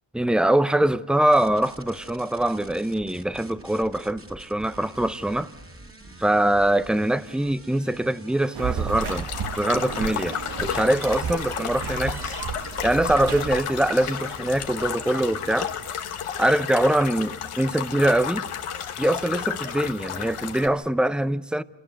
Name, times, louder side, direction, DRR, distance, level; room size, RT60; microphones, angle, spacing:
voice 1, 0.1-5.5 6.2-9.3 9.6-12.4 12.8-15.7 16.4-18.5 19.0-21.6, right 1 dB, ahead, 0.7 m, -23 dB
sound 1, 1.3-15.8, right 2 dB, 25° right, 2.6 m, -46 dB
sound 2, 8.5-13.6, right 8 dB, 55° right, 0.8 m, -33 dB
sound 3, 8.9-20.7, left 8 dB, 85° left, 1.4 m, -32 dB
27.0 x 18.5 x 5.3 m
cardioid pair, 55°, 50 cm